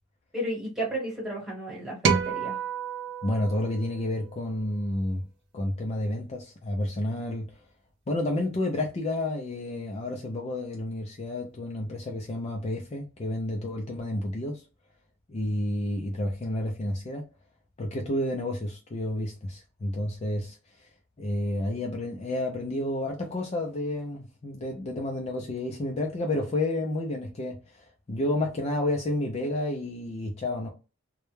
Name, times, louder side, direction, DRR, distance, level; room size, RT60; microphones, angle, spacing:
voice 1, 0.3-2.6, right 1 dB, ahead, 1.1 m, -33 dB
sound 1, 2.0-4.5, right 6 dB, 60° right, 0.4 m, -29 dB
voice 2, 3.2-5.2 5.5-7.5 8.1-14.6 15.3-17.2 17.8-20.9 21.2-30.7, left 1 dB, 30° left, 0.4 m, -30 dB
2.2 x 2.0 x 3.1 m
head